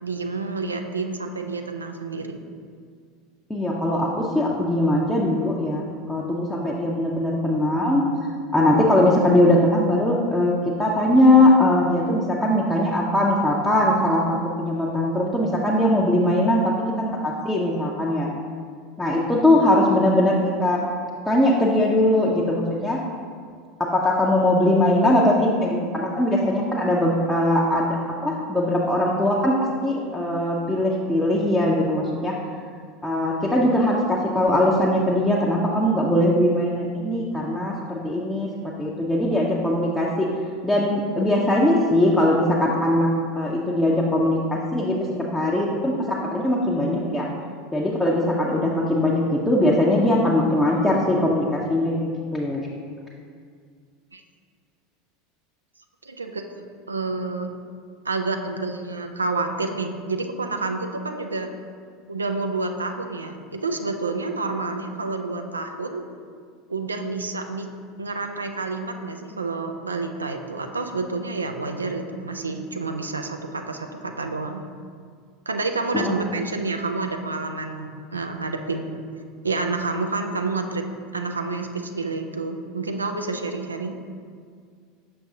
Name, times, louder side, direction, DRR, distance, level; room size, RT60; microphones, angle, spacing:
voice 1, 0.0-2.4 54.1-54.2 56.0-57.5 58.0-61.5 62.1-66.0 66.7-67.7 68.0-74.6 75.5-79.0 79.4-84.0, right 3 dB, 80° right, 5 dB, 0.4 m, -29 dB
voice 2, 3.5-8.0 8.5-10.5 10.8-16.7 17.0-18.3 19.0-20.8 21.2-23.0 23.8-29.5 29.8-32.3 33.0-38.5 38.8-40.3 40.6-43.1 43.3-47.3 47.7-52.6 75.9-76.2, left 1 dB, 5° left, -4 dB, 0.7 m, -21 dB
6.1 x 6.0 x 2.7 m, 2.1 s
figure-of-eight pair, 80°, 0 cm